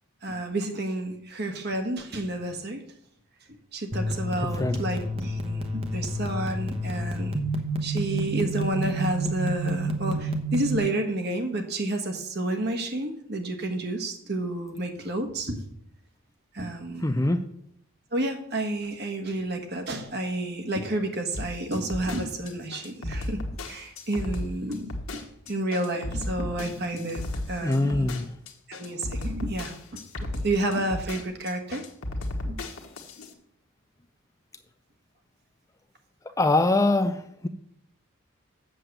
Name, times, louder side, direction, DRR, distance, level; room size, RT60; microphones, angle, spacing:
voice 1, 0.2-2.8 3.7-7.4 7.8-15.6 16.5-17.3 18.1-25.2 25.5-28.1 28.7-31.8 32.4-32.6, right 1 dB, 50° right, 5 dB, 1.4 m, -30 dB
sound 1, 3.9-10.8, right 1 dB, 25° right, 1.0 m, -29 dB
voice 2, 4.4-4.8 17.0-17.5 27.6-28.3 36.4-37.5, left 2 dB, 15° left, 9 dB, 0.4 m, -23 dB
sound 2, 21.3-33.3, left 1 dB, 80° left, 1.4 m, -34 dB
7.7 x 7.4 x 6.8 m, 0.74 s
head